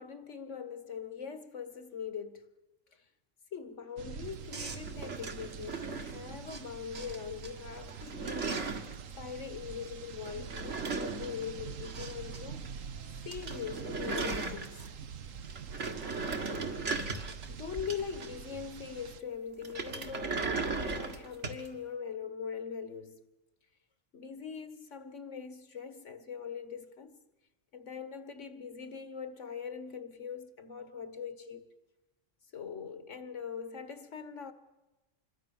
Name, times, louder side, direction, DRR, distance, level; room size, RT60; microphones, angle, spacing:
voice 1, 0.0-2.5 2.9-3.0 3.5-8.7 9.2-12.7 13.3-14.8 16.6-16.7 17.5-23.2 24.1-27.2 27.7-31.6 32.5-34.5, left 6 dB, 70° left, 2.0 m, -42 dB
sound 1, 4.0-19.2, right 7 dB, 90° right, 1.4 m, -45 dB
sound 2, 4.5-6.6 6.9-7.5 7.8-9.0 10.2-12.4 12.6-12.7 13.0-13.1 13.3-15.1 15.4-18.5 19.6-21.7, right 4 dB, 65° right, 2.3 m, -37 dB
26.5 x 22.0 x 7.3 m
omnidirectional pair, 1.3 m